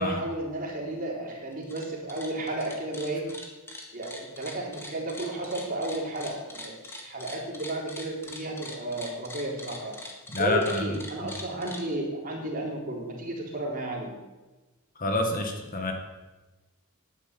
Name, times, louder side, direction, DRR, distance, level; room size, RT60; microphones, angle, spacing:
voice 1, 0.0-3.3 3.9-6.8 7.0-10.0 10.4-14.1, right 1 dB, 40° right, -1 dB, 3.9 m, -33 dB
sound 1, 1.5-1.8 2.1-11.8, left 2 dB, 10° left, 2.1 m, -42 dB
voice 2, 10.3-11.3 15.0-15.9, left 2 dB, 40° left, 4 dB, 2.0 m, -28 dB
11.5 x 9.8 x 9.0 m, 1.2 s
head